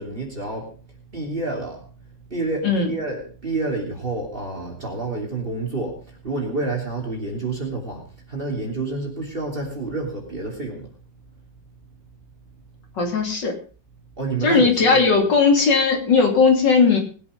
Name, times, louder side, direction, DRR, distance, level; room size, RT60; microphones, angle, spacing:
voice 1, 0.0-10.9 14.1-15.1, right 3 dB, 30° right, 1 dB, 3.3 m, -29 dB
voice 2, 13.0-13.6 14.4-17.0, left 4 dB, 80° left, 2 dB, 3.5 m, -17 dB
20.0 x 8.3 x 5.1 m, 0.38 s
omnidirectional pair, 1.9 m